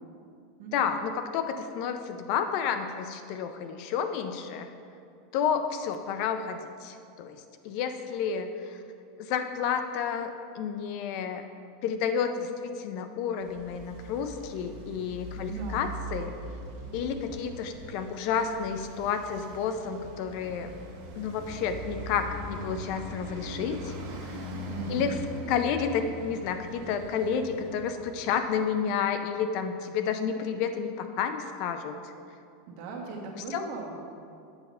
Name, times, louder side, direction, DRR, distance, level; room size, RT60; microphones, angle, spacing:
voice 1, 0.7-4.7 5.3-8.8 9.2-11.4 11.8-16.4 16.9-20.7 21.2-23.9 24.9-25.2 25.5-32.1 33.5-33.7, left 7 dB, 50° left, 7 dB, 0.4 m, -31 dB
Traffic noise roadway noise, 13.4-28.9, right 1 dB, 80° right, 1.3 m, -41 dB
voice 2, 15.4-15.9 24.7-25.1 32.7-34.0, right 3 dB, 60° right, -1 dB, 1.4 m, -38 dB
7.9 x 5.4 x 4.2 m, 2.4 s
supercardioid pair, 150°, 0 cm